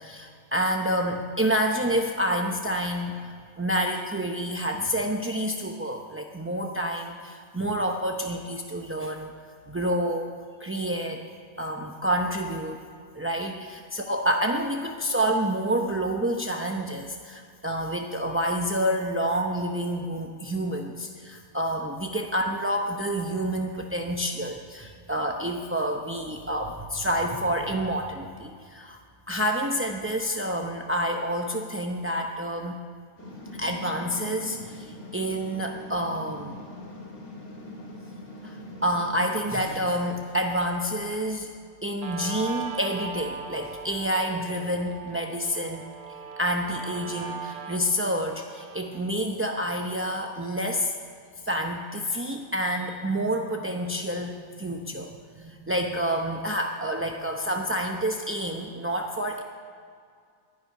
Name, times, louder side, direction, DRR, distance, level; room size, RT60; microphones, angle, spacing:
voice 1, 0.0-3.2 3.6-9.3 9.7-10.3 10.6-11.2 11.6-12.8 13.1-29.0 29.3-32.8 33.6-36.6 38.4-41.5 41.8-45.9 46.4-50.9 51.4-59.4, equal, 15° right, 2 dB, 0.5 m, -28 dB
sound 1, 33.2-39.6, left 1 dB, 50° left, 2.9 m, -42 dB
Guitar, 42.0-49.0, right 5 dB, 80° right, 1.5 m, -39 dB
11.5 x 9.9 x 9.8 m, 2.2 s
omnidirectional pair, 1.5 m